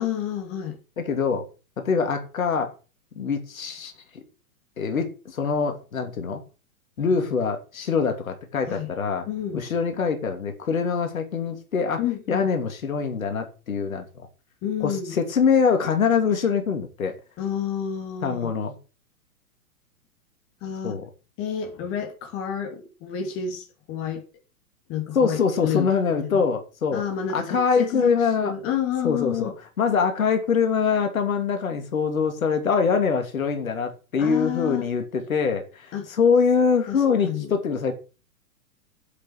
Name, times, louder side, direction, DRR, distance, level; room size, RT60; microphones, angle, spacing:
voice 1, 0.0-0.8 8.7-8.9 9.3-9.6 12.0-12.4 14.6-15.2 17.4-18.5 20.6-21.0 21.4-24.2 24.9-26.4 26.9-28.1 28.4-29.5 34.2-34.8 35.9-36.1 36.9-37.0 37.2-37.5, left 9 dB, 30° left, 2.9 m, -29 dB
voice 2, 1.0-1.5 1.8-2.7 3.2-4.2 4.8-6.4 7.0-9.3 9.5-12.0 12.3-14.3 14.8-17.2 18.2-18.7 20.8-21.1 25.1-27.0 27.3-28.5 29.0-29.5 29.8-37.9, left 5 dB, 65° left, 3.0 m, -24 dB
8.4 x 8.2 x 9.0 m
figure-of-eight pair, 110°, 43 cm